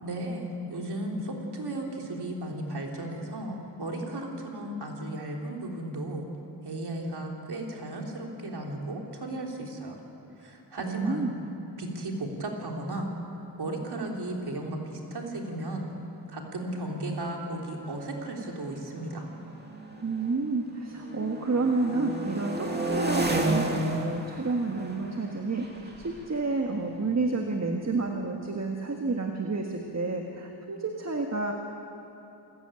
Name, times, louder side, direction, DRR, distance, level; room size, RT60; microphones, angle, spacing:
voice 1, 0.0-6.3 6.6-10.0 10.4-11.3 11.8-13.1 13.6-15.9 16.3-19.3, right 1 dB, 60° right, 0 dB, 3.6 m, -35 dB
voice 2, 10.8-11.3 20.0-31.5, right 3 dB, 40° right, 2 dB, 1.7 m, -30 dB
sound 1, 15.2-15.3 15.5-15.9 16.6-20.6 20.9-27.6, right 1 dB, 20° right, 2.4 m, -34 dB
27.5 x 15.5 x 9.1 m, 2.9 s
wide cardioid pair, 135°, 43 cm